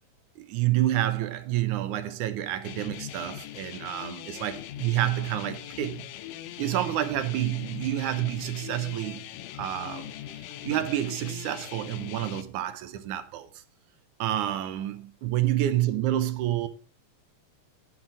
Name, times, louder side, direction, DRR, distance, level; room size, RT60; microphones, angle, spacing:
voice 1, 0.4-6.1 6.6-9.2 9.5-10.1 10.6-13.6 14.2-16.7, right 13 dB, 70° right, 2.1 m, -28 dB
sound 1, 2.6-12.4, left 12 dB, 75° left, 2.2 m, -41 dB
11.0 x 7.5 x 4.9 m
omnidirectional pair, 4.0 m